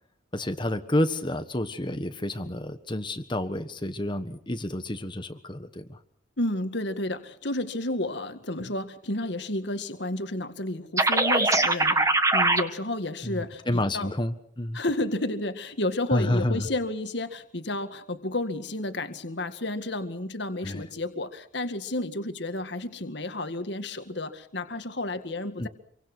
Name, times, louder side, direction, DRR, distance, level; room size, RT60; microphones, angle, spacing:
voice 1, 0.3-6.0 13.2-14.8 16.1-16.7 20.6-20.8 25.6-25.7, left 1 dB, 25° left, 9 dB, 1.4 m, -29 dB
voice 2, 6.4-14.1 14.7-25.7, left 2 dB, 60° left, 9 dB, 2.0 m, -31 dB
sound 1, 11.0-12.6, right 2 dB, 15° right, 1.7 m, -21 dB
27.0 x 24.5 x 6.2 m, 0.63 s
head